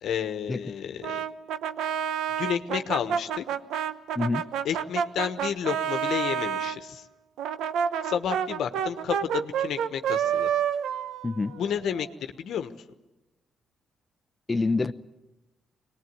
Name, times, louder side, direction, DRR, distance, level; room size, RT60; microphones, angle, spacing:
voice 1, 0.0-1.2 2.4-3.4 4.6-7.0 8.0-10.5 11.6-12.1 12.4-12.7, left 8 dB, 75° left, 9 dB, 1.2 m, -31 dB
Brass instrument, 1.0-6.8 7.4-12.1, right 8 dB, 85° right, 0.8 m, -29 dB
voice 2, 4.1-4.5 11.2-11.6 14.5-14.9, left 3 dB, 25° left, 8 dB, 0.9 m, -27 dB
23.0 x 19.5 x 9.5 m, 1.0 s
supercardioid pair, 60°, 0 cm